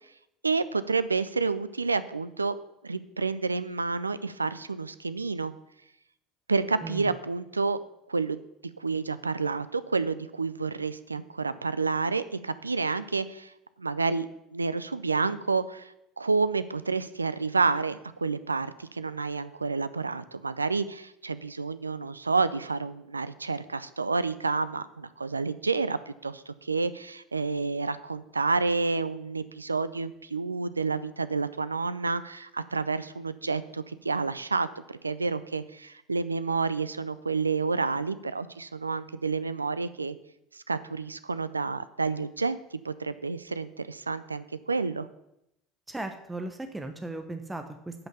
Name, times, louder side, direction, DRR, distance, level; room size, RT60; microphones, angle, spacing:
voice 1, 0.4-2.5 2.8-5.5 6.5-7.8 8.1-8.4 8.8-13.5 13.8-40.2 40.5-42.6 42.8-45.1, right 4 dB, 90° right, 14 dB, 0.4 m, -29 dB
voice 2, 6.8-7.1 45.9-47.9, right 2 dB, 10° right, 6 dB, 1.0 m, -37 dB
8.7 x 5.7 x 7.0 m, 0.82 s
figure-of-eight pair, 70°, 0 cm